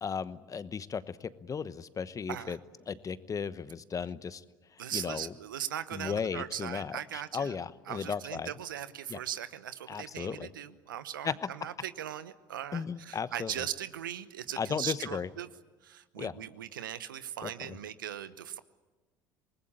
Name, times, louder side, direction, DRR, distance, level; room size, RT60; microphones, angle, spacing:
voice 1, 0.0-2.6 2.9-4.4 4.9-5.3 5.9-8.5 9.1-9.2 9.9-10.5 11.2-11.3 12.7-13.5 14.6-15.3 16.2-16.3 17.4-17.5, left 6 dB, 30° left, 15 dB, 1.1 m, -35 dB
voice 2, 4.8-7.6 7.9-15.5 15.8-18.6, right 10 dB, 85° right, 15 dB, 0.9 m, -39 dB
27.5 x 19.5 x 8.7 m, 1.2 s
hypercardioid pair, 65°, 11 cm